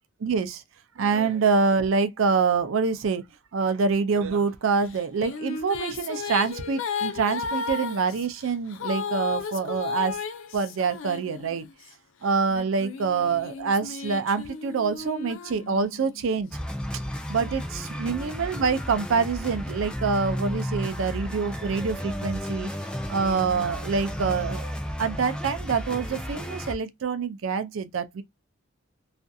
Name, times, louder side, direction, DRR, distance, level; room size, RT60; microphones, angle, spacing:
voice 1, 0.2-0.6 1.0-3.2 3.5-10.2 10.5-11.7 12.2-16.5 17.3-22.7 23.1-24.7 25.0-28.2, right 5 dB, 85° right, 0.4 m, -26 dB
Female singing, 4.9-11.8 12.5-16.3, left 5 dB, 80° left, 0.4 m, -34 dB
sound 1, 16.5-26.7, equal, 5° left, 0.3 m, -33 dB
2.5 x 2.4 x 2.3 m
head